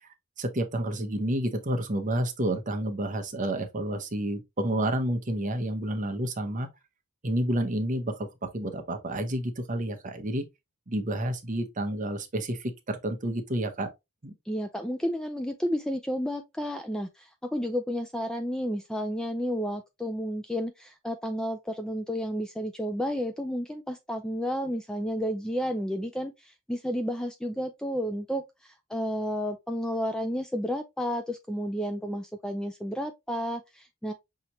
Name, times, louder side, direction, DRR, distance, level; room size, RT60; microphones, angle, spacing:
voice 1, 0.4-6.7 7.2-8.3 8.5-10.4 10.9-13.9 14.2-14.3, right 1 dB, 35° right, 0.8 m, -30 dB
voice 2, 14.5-34.1, equal, 5° left, 0.3 m, -31 dB
5.7 x 2.8 x 3.0 m
head